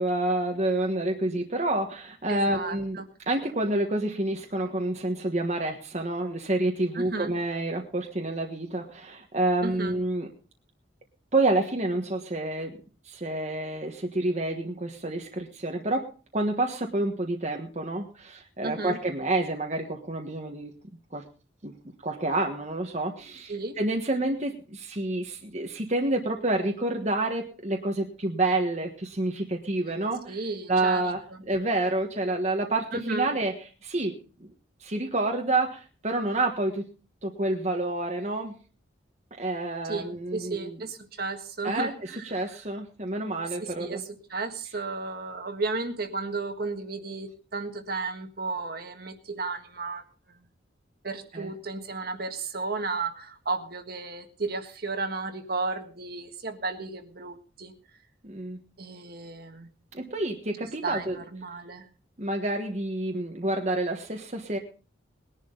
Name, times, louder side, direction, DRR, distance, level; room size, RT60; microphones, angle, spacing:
voice 1, 0.0-3.0 3.3-10.3 11.3-12.7 13.0-16.1 16.3-20.7 21.1-21.2 21.6-21.7 22.0-30.4 30.7-31.2 31.5-33.6 33.8-34.1 34.4-34.5 34.8-36.9 37.2-38.6 39.4-40.8 41.6-41.9 42.2-44.0 51.3-51.5 58.2-58.6 59.9-61.2 62.2-64.6, right 2 dB, 35° right, 2 dB, 1.4 m, -28 dB
voice 2, 2.3-3.0 6.9-7.3 9.6-9.9 18.6-19.0 23.5-23.8 30.3-31.0 31.3-31.4 32.9-33.3 39.9-42.5 43.6-50.0 51.0-57.7 58.8-59.7 60.8-61.9, right 3 dB, 50° right, 6 dB, 1.7 m, -33 dB
20.5 x 11.0 x 3.9 m, 0.38 s
head